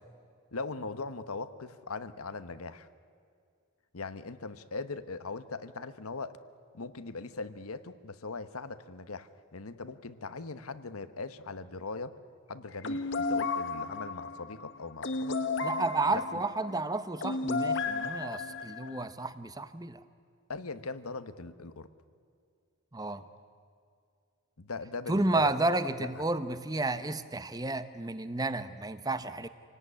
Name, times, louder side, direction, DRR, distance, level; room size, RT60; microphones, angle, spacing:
voice 1, 0.5-2.9 3.9-6.4 6.7-12.2 12.5-15.4 16.1-16.4 20.5-21.9 24.6-26.2, left 3 dB, 85° left, 12 dB, 1.1 m, -40 dB
sound 1, 12.8-19.0, left 3 dB, 55° left, 1.2 m, -33 dB
voice 2, 15.6-20.0 22.9-23.2 25.1-29.5, right 2 dB, 15° right, 12 dB, 0.9 m, -31 dB
27.5 x 18.0 x 9.8 m, 2.3 s
head